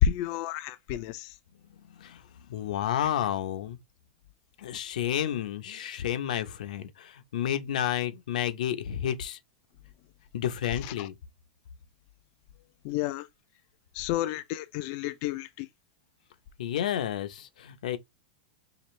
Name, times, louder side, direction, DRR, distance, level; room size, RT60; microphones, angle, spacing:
voice 1, 0.0-1.3 10.8-11.1 12.8-13.3 13.9-15.7, left 10 dB, 45° left, 0.4 m, -30 dB
voice 2, 2.5-3.8 4.6-9.4 10.3-11.1 16.6-18.0, left 10 dB, 75° left, 0.7 m, -31 dB
5.0 x 2.4 x 3.2 m
hypercardioid pair, 135°, 4 cm